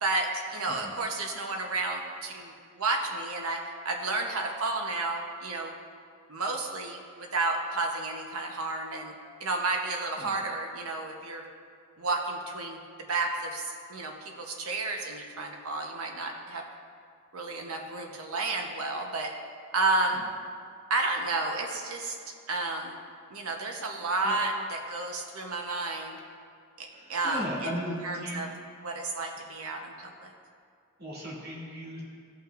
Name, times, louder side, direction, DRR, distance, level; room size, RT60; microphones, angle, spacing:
voice 1, 0.0-5.7 6.3-9.1 9.4-11.4 12.0-12.8 13.1-16.6 17.3-19.3 19.7-20.3 20.9-22.2 22.5-23.0 23.3-26.2 26.8-27.7 28.0-28.5 28.8-30.3, right 3 dB, 70° right, 2 dB, 0.9 m, -31 dB
voice 2, 26.9-28.5 31.0-32.0, equal, 45° right, -6 dB, 2.2 m, -37 dB
15.5 x 5.8 x 2.5 m, 2.2 s
head